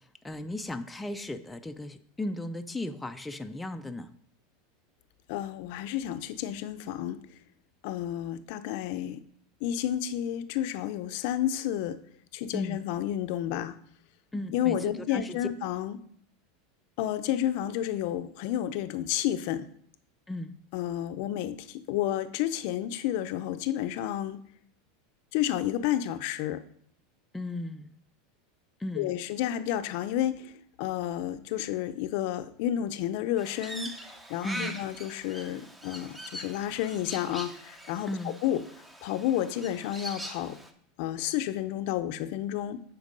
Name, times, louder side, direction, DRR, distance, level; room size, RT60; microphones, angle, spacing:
voice 1, 0.2-4.1 12.5-12.8 14.3-15.4 20.3-20.5 27.3-27.9 28.8-29.1 34.4-34.8 38.1-38.3, left 1 dB, 5° left, 7 dB, 0.4 m, -36 dB
voice 2, 5.3-7.2 7.8-9.2 9.6-12.0 12.3-13.8 14.5-16.0 17.0-19.7 20.7-24.4 25.3-26.6 29.0-30.5 30.8-33.9 34.3-38.6 39.0-40.6 41.0-42.8, left 11 dB, 60° left, 11 dB, 0.5 m, -31 dB
Crow, 33.4-40.7, right 1 dB, 10° right, 0.8 m, -42 dB
8.1 x 4.5 x 5.3 m, 0.64 s
supercardioid pair, 135°, 0 cm